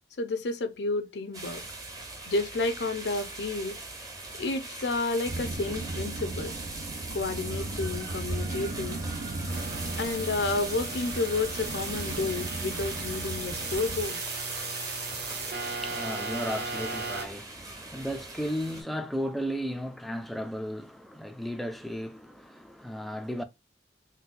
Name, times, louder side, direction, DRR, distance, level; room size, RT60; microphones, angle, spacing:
voice 1, 0.2-1.6 2.3-3.8 4.4-6.5 7.1-9.0 10.0-14.2, left 3 dB, 70° left, 0.6 m, -31 dB
sound 1, 1.3-18.8, right 3 dB, 20° right, 0.7 m, -40 dB
sound 2, 5.2-14.0, right 2 dB, 80° right, 0.6 m, -36 dB
sound 3, 9.5-17.2, right 3 dB, 65° right, 1.2 m, -37 dB
voice 2, 15.5-23.4, equal, ahead, 0.4 m, -35 dB
3.9 x 2.2 x 2.5 m
head